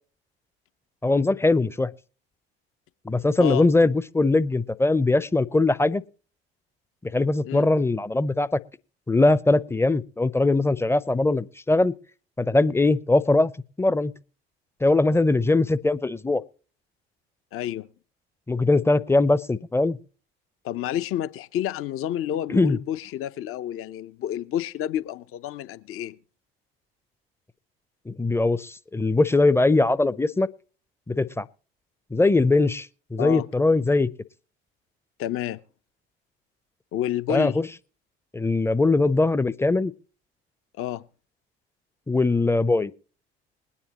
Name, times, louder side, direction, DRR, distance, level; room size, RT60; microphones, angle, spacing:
voice 1, 1.0-1.9 3.1-6.0 7.0-8.5 9.1-11.9 12.4-13.5 13.8-14.1 14.8-16.4 18.5-20.0 22.5-22.8 28.1-30.5 31.1-31.4 32.1-34.1 37.3-37.6 38.3-39.9 42.1-42.9, left 2 dB, 10° left, 0.6 m, -21 dB
voice 2, 17.5-17.9 20.6-26.2 33.2-33.4 35.2-35.6 36.9-37.6 40.8-41.0, left 11 dB, 45° left, 0.7 m, -29 dB
21.0 x 9.8 x 3.0 m
hypercardioid pair, 60°, 30 cm